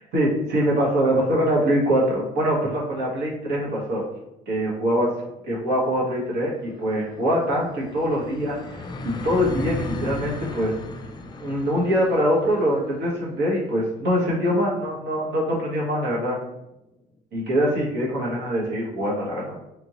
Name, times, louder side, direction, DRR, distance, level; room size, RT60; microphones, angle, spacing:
voice 1, 0.1-4.0 4.5-5.1 5.4-10.7 11.4-16.4 17.3-19.6, equal, 75° right, -4 dB, 1.3 m, -23 dB
sound 1, 5.2-16.0, left 2 dB, 25° left, 0.3 m, -37 dB
3.5 x 2.6 x 2.9 m, 0.90 s
cardioid pair, 110°, 17 cm